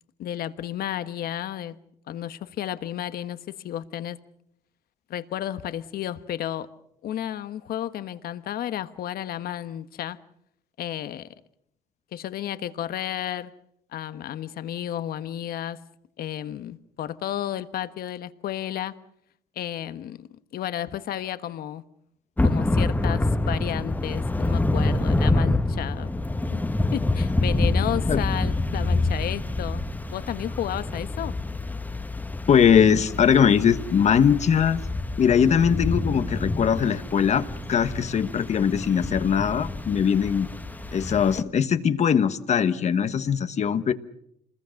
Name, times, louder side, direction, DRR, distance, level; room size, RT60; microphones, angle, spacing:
voice 1, 0.2-1.8 2.1-4.2 5.1-6.7 7.0-10.2 10.8-11.3 12.1-13.5 13.9-15.8 16.2-19.0 19.6-21.8 22.4-26.1 26.5-26.6 26.9-29.8 30.1-31.3, left 11 dB, 65° left, 1.3 m, -32 dB
Thunder / Rain, 22.4-41.4, left 2 dB, 10° left, 1.3 m, -27 dB
voice 2, 32.5-34.9 35.2-40.5 40.9-43.9, left 7 dB, 40° left, 1.3 m, -21 dB
27.5 x 21.0 x 6.5 m
cardioid pair, 110°, 17 cm